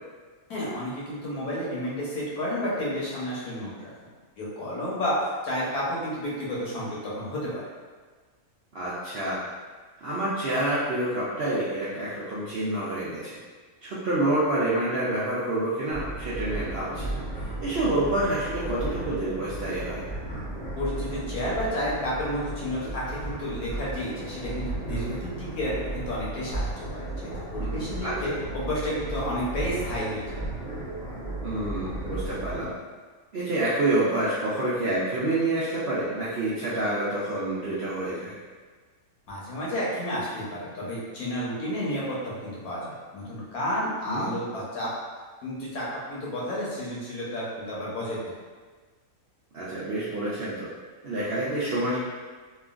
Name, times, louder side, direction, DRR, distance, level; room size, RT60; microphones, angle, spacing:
voice 1, 0.5-3.9 4.4-7.6 20.8-30.4 39.3-44.9 45.4-48.2, equal, 80° left, -7 dB, 1.3 m, -31 dB
voice 2, 8.7-9.4 10.0-13.4 13.8-17.1 17.6-20.0 28.0-28.1 31.4-32.7 33.3-38.3 44.0-44.3 49.5-50.7 51.0-52.0, right 1 dB, 70° right, -10 dB, 0.5 m, -28 dB
sound 1, 15.9-32.6, right 2 dB, 50° left, 0.7 m, -34 dB
3.0 x 2.4 x 2.4 m, 1.4 s
omnidirectional pair, 1.5 m